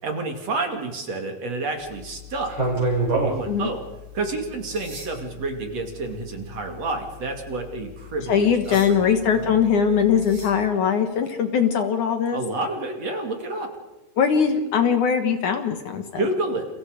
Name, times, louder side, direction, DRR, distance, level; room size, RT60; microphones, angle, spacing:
voice 1, 0.0-2.5 3.2-3.8 4.1-9.6 12.3-13.7 16.2-16.7, right 2 dB, 45° right, 4 dB, 3.4 m, -29 dB
sound 1, 1.8-10.6, right 2 dB, 30° right, 7.0 m, -32 dB
voice 2, 8.3-12.4 14.2-16.0, left 7 dB, 60° left, 7 dB, 2.6 m, -21 dB
30.0 x 29.5 x 5.1 m, 1.1 s
omnidirectional pair, 4.4 m